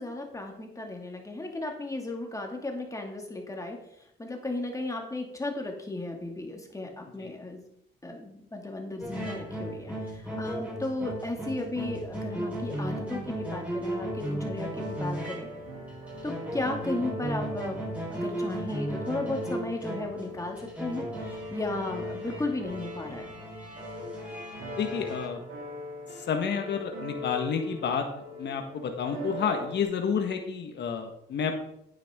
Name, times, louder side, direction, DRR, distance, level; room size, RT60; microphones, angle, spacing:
voice 1, 0.0-3.8 4.2-7.6 8.0-15.5 16.2-17.8 18.1-23.3, left 2 dB, 15° left, 2 dB, 2.3 m, -35 dB
sound 1, 9.0-25.3, right 1 dB, 5° right, 4.7 m, -36 dB
sound 2, 13.9-29.8, left 1 dB, 80° right, 3.2 m, -41 dB
voice 2, 24.8-25.4 26.2-28.0 28.4-31.6, left 6 dB, 60° left, 4 dB, 1.6 m, -30 dB
9.3 x 9.1 x 3.8 m, 0.74 s
cardioid pair, 90°, 20 cm